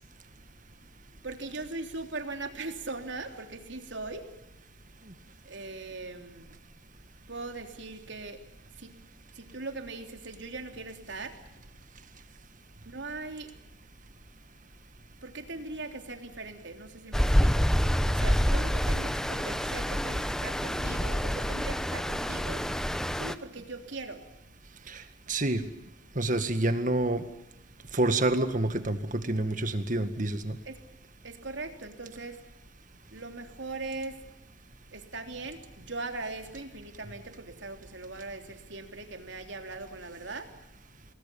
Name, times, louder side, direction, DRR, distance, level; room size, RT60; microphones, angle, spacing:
voice 1, 1.2-4.3 5.4-6.5 7.3-8.4 8.8-8.9 9.3-11.4 12.8-13.5 15.2-17.7 18.1-22.7 23.1-24.3 30.6-30.8 31.2-32.4 33.1-34.3 34.9-40.6, right 3 dB, 65° right, 5 dB, 3.4 m, -40 dB
Stream, 17.1-23.3, equal, 5° left, 0.9 m, -27 dB
voice 2, 24.9-25.6 26.2-27.2 27.9-30.6, right 2 dB, 40° right, 9 dB, 2.0 m, -28 dB
28.0 x 20.0 x 7.1 m, 0.91 s
head